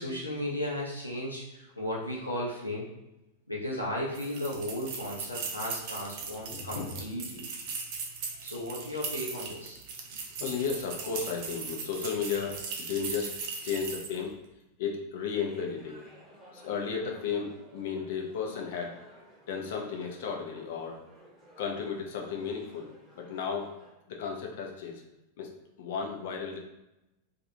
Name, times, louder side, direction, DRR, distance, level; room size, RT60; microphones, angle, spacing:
voice 1, 0.0-2.9 3.5-7.4 8.4-9.8, left 1 dB, 85° left, -5 dB, 0.7 m, -35 dB
sound 1, 4.1-14.2, right 5 dB, 45° right, 0.5 m, -39 dB
voice 2, 6.5-6.9 10.4-13.3 13.6-14.3 14.8-16.0 16.5-19.0 19.5-21.0 21.6-22.9 23.2-23.7 24.1-25.0 25.4-25.5 25.8-26.6, left 6 dB, 55° left, 1 dB, 0.5 m, -34 dB
sound 2, 15.3-23.9, right 1 dB, 5° right, 1.1 m, -54 dB
2.5 x 2.4 x 2.8 m, 0.92 s
figure-of-eight pair, 90°, 0 cm